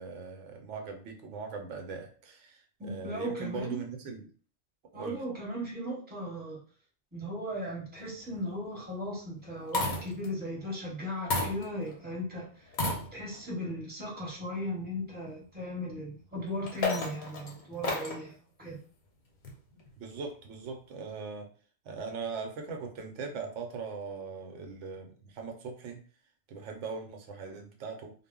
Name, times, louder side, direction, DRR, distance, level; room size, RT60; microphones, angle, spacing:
voice 1, 0.0-4.3 4.9-5.2 20.0-21.5 21.8-26.0 26.5-28.1, right 5 dB, 85° right, 4 dB, 0.9 m, -40 dB
voice 2, 2.8-3.8 4.9-6.6 7.1-12.7 13.1-18.8, equal, 10° right, -3 dB, 0.8 m, -37 dB
sound 1, 8.0-8.4 9.4-10.3 11.3-12.0 12.7-13.5 14.2-14.3 16.4-18.3 19.4-19.9, left 2 dB, 50° left, 0.6 m, -33 dB
2.1 x 2.0 x 3.6 m, 0.43 s
omnidirectional pair, 1.2 m